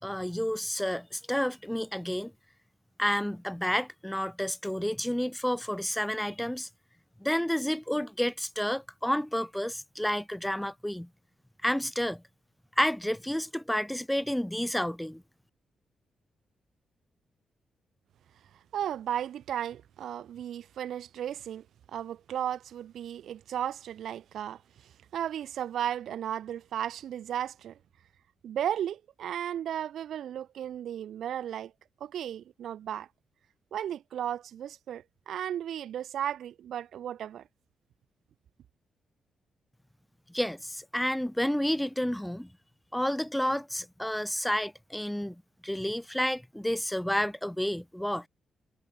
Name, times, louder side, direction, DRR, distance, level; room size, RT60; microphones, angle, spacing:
voice 1, 0.0-2.3 3.0-6.7 7.2-11.1 11.6-12.2 12.8-15.2 40.3-42.5 42.9-45.4 45.6-48.2, equal, 5° left, 4.1 m, -30 dB
voice 2, 18.7-21.6 21.9-27.8 28.4-31.7 32.0-33.1 33.7-37.4, right 10 dB, 75° right, 2.1 m, -35 dB
cardioid pair, 65°, 0 cm